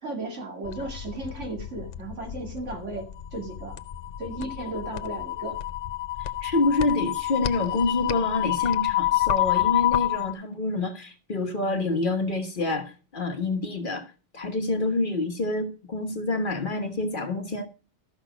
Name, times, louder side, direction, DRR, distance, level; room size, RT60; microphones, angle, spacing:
voice 1, 0.0-3.8 4.2-5.6, right 2 dB, 80° right, 2.6 m, -35 dB
sound 1, 0.6-10.3, left 15 dB, 80° left, 1.0 m, -28 dB
voice 2, 6.4-14.0 14.3-17.7, left 2 dB, 45° left, 1.4 m, -27 dB
13.0 x 5.8 x 5.0 m
omnidirectional pair, 1.2 m